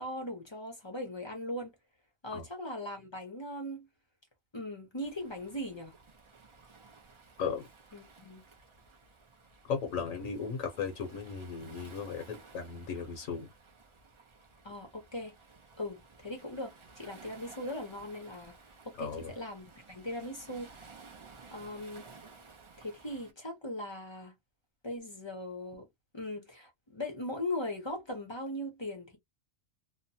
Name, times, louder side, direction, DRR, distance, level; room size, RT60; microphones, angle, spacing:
voice 1, 0.0-1.7 2.2-3.9 4.5-5.9 7.9-8.4 14.6-15.3 15.8-18.5 18.8-20.9 21.5-22.1 22.8-24.3 24.8-25.9 26.1-29.2, left 1 dB, 25° left, 0.6 m, -39 dB
Waves surf, 5.0-23.3, right 4 dB, 50° right, 0.3 m, -56 dB
voice 2, 9.6-13.5 19.0-19.3, left 6 dB, 70° left, 1.2 m, -36 dB
2.9 x 2.1 x 2.7 m
omnidirectional pair, 1.5 m